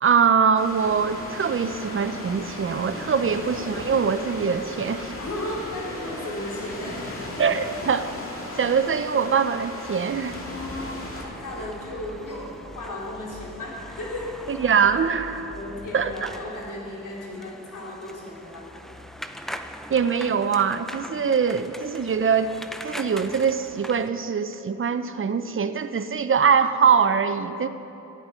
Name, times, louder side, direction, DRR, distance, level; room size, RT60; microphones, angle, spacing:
voice 1, 0.0-5.1 7.4-8.1 8.6-10.4 14.5-15.5 15.9-16.3 19.9-22.5 22.8-27.7, right 6 dB, 40° right, 10 dB, 0.6 m, -23 dB
sound 1, 0.5-11.3, left 1 dB, 40° left, 2.0 m, -36 dB
voice 2, 5.2-7.0 10.5-14.3 15.5-18.7, left 1 dB, 65° left, -4 dB, 3.1 m, -35 dB
sound 2, 9.8-24.1, equal, ahead, 0.5 m, -42 dB
sound 3, 10.7-16.4, left 1 dB, 25° left, 1.7 m, -45 dB
15.5 x 9.7 x 4.4 m, 2.9 s
cardioid pair, 75°, 33 cm